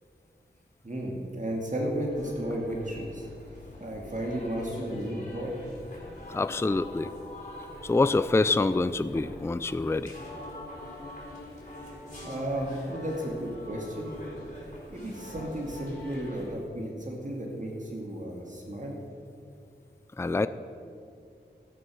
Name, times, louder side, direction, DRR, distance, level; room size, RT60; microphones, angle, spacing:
voice 1, 0.8-3.3 3.8-5.5 12.2-14.1 14.9-19.0, right 1 dB, 40° right, -1 dB, 2.2 m, -33 dB
sound 1, 2.1-16.5, left 1 dB, 40° left, 4.0 m, -44 dB
voice 2, 6.3-7.1 7.8-10.1 20.2-20.5, left 3 dB, 15° left, 13 dB, 0.4 m, -26 dB
14.0 x 10.0 x 6.3 m, 2.5 s
wide cardioid pair, 75°, 19 cm